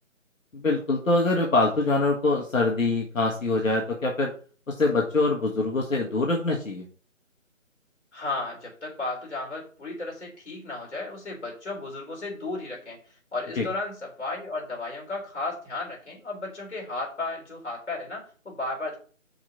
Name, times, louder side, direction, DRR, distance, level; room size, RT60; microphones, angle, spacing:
voice 1, 0.5-4.3 4.7-6.8 13.6-13.7, left 2 dB, 85° left, -1 dB, 1.7 m, -24 dB
voice 2, 8.1-13.0 13.3-19.0, left 2 dB, 60° left, -1 dB, 3.9 m, -34 dB
5.9 x 4.0 x 5.7 m, 0.41 s
figure-of-eight pair, 170°, 39 cm